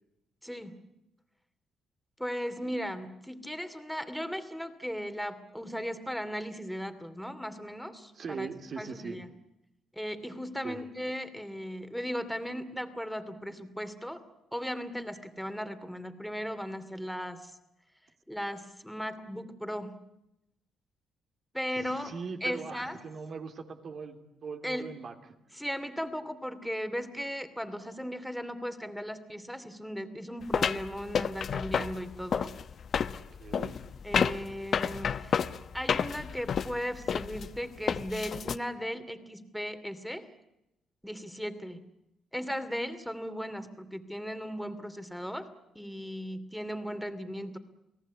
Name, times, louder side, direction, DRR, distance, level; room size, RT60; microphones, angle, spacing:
voice 1, 0.4-0.7 2.2-8.5 8.8-9.3 10.0-14.2 14.5-17.5 18.3-20.0 21.5-22.1 22.4-23.0 24.6-24.9 25.5-32.5 34.0-35.5 35.7-40.3 41.0-41.8 42.3-45.5 45.7-47.6, equal, ahead, 9 dB, 2.6 m, -37 dB
voice 2, 8.1-9.2 10.6-10.9 21.8-25.1 33.4-33.8, right 5 dB, 50° right, 5 dB, 3.1 m, -40 dB
sound 1, 30.5-38.6, left 7 dB, 55° left, 0.9 m, -30 dB
29.0 x 18.5 x 8.4 m, 0.87 s
cardioid pair, 90°, 0 cm